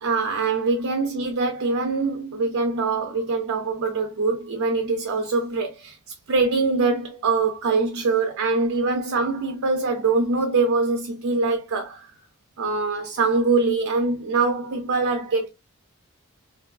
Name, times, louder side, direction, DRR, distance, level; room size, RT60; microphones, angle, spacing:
voice 1, 0.0-6.0 6.3-12.1 12.6-15.5, right 3 dB, 65° right, 0.4 m, -23 dB
2.6 x 2.3 x 2.2 m
head